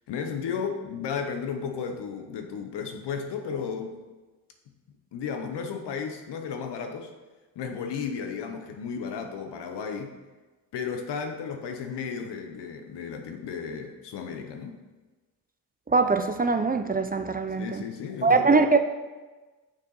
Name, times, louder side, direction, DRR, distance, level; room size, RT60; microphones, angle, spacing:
voice 1, 0.1-4.0 5.1-7.1 7.6-10.1 10.7-14.8 17.6-18.6, left 6 dB, 85° left, 5 dB, 0.9 m, -34 dB
voice 2, 15.9-17.8 18.2-18.8, right 4 dB, 20° right, 8 dB, 0.5 m, -22 dB
6.7 x 5.6 x 3.9 m, 1.2 s
cardioid pair, 65°, 40 cm